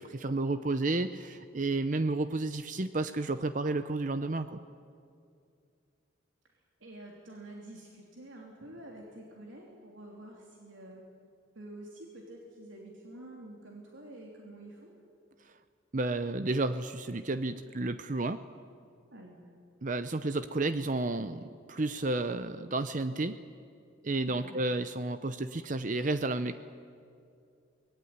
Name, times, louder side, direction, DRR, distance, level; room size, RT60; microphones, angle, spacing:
voice 1, 0.0-4.6 15.9-18.4 19.8-21.4 21.7-23.4 24.0-26.6, right 2 dB, 40° right, 11 dB, 0.7 m, -31 dB
voice 2, 6.8-11.0 11.5-14.9 19.1-19.4 24.2-24.5, right 1 dB, 85° right, -1 dB, 3.2 m, -48 dB
24.0 x 19.5 x 9.6 m, 2.4 s
head